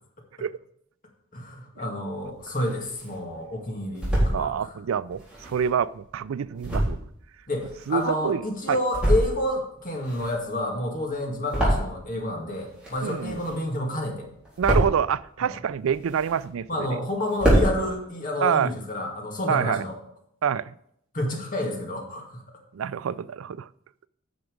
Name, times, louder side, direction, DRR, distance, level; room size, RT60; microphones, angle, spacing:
voice 1, 1.3-4.7 7.5-14.3 15.4-15.6 16.7-19.9 21.1-22.4, left 1 dB, 40° left, 2.1 m, -29 dB
sound 1, 2.2-3.2 3.6-4.4 5.1-8.3 8.7-9.5 9.8-12.3 12.5-13.8 14.1-15.1 15.6-16.7 17.0-17.1 17.3-17.7, right 1 dB, 5° right, 3.7 m, -26 dB
voice 2, 4.3-7.0 7.9-8.8 13.0-13.4 14.6-16.9 18.4-18.7 19.5-19.8 20.4-20.7 22.7-23.7, right 7 dB, 75° right, 0.4 m, -26 dB
9.6 x 6.0 x 5.2 m
head